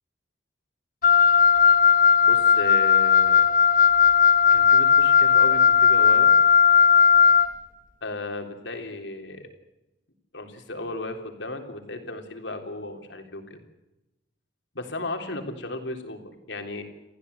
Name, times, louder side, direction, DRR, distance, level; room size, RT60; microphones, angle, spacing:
Wind instrument woodwind instrument, 1.0-7.5, left 7 dB, 50° left, 1.2 m, -17 dB
voice 1, 2.2-3.5 4.5-6.3 8.0-9.5 10.3-13.6 14.8-16.8, left 2 dB, 70° left, 4 dB, 3.7 m, -35 dB
29.0 x 15.0 x 8.3 m, 0.99 s
head